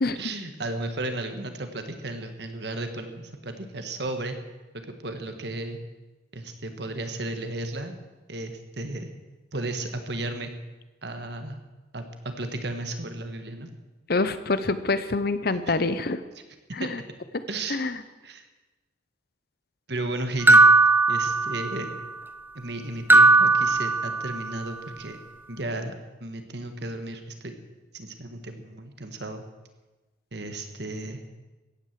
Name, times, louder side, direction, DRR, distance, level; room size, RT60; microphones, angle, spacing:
voice 1, 0.1-4.3 5.0-5.8 6.3-8.0 8.3-9.1 9.5-10.5 11.0-11.6 11.9-13.7 15.7-15.8 16.8-16.9 17.5-17.8 18.2-18.5 19.9-20.6 21.1-21.9 22.5-25.2 25.5-25.9 26.2-27.5 27.9-29.4 30.3-31.2, right 2 dB, 55° right, 7 dB, 1.6 m, -34 dB
voice 2, 14.1-16.2 16.7-17.0 17.7-17.9, left 3 dB, 50° left, 12 dB, 0.8 m, -26 dB
sound 1, 20.5-21.9 23.1-24.5, right 3 dB, 10° right, 0.5 m, -18 dB
15.0 x 9.8 x 7.6 m, 1.1 s
head